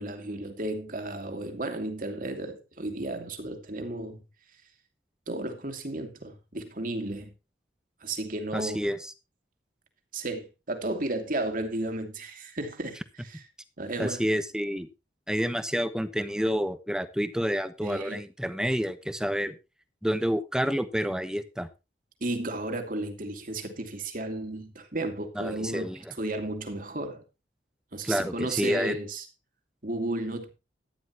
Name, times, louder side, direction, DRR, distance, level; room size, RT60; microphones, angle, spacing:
voice 1, 0.0-4.2 5.3-7.3 8.0-8.8 10.1-13.4 13.8-14.3 17.8-18.2 22.2-25.9 26.2-27.2 27.9-29.3 29.8-30.5, right 2 dB, 50° right, 2.6 m, -33 dB
voice 2, 8.5-9.1 14.0-14.9 15.3-19.6 20.0-21.7 25.4-26.0 28.0-29.0, equal, 5° right, 1.1 m, -29 dB
14.0 x 10.5 x 3.0 m
head